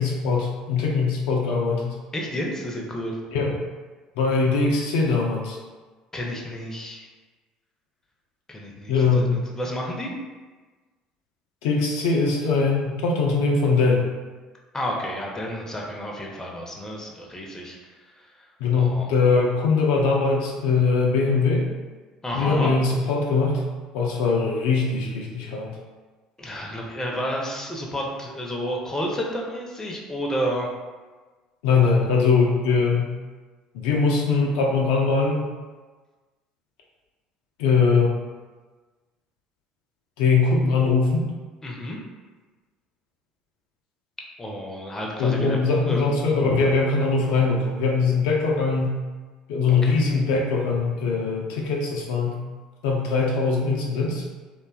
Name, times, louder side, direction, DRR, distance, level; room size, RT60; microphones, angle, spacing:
voice 1, 0.0-2.0 3.3-3.5 4.2-5.6 8.9-9.4 11.6-14.1 18.6-21.7 22.3-23.6 23.9-25.7 31.6-33.1 33.7-35.4 37.6-38.1 40.2-41.3 45.2-49.0 49.5-52.4 52.8-54.2, left 4 dB, 70° left, -2 dB, 0.3 m, -21 dB
voice 2, 2.1-3.2 6.1-7.1 8.5-9.2 9.5-10.1 14.7-18.3 18.7-19.1 22.2-22.7 26.4-30.7 41.6-42.0 44.4-45.6 45.9-46.1 49.8-49.9, equal, 15° left, -1 dB, 0.5 m, -31 dB
2.5 x 2.2 x 2.3 m, 1.3 s
hypercardioid pair, 60°, 3 cm